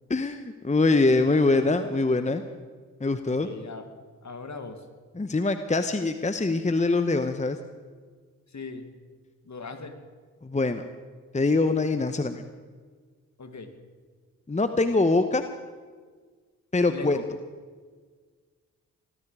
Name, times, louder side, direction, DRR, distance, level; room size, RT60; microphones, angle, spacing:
voice 1, 0.1-2.4 3.0-3.5 5.1-7.6 10.4-10.8 11.3-12.4 14.5-15.4 16.7-17.2, left 3 dB, 20° left, 9 dB, 1.0 m, -23 dB
voice 2, 3.2-3.9 4.2-4.8 8.5-8.9 9.5-10.0 13.4-13.7 16.9-17.2, left 4 dB, 50° left, 7 dB, 2.1 m, -39 dB
21.0 x 12.5 x 4.9 m, 1.5 s
supercardioid pair, 45°, 36 cm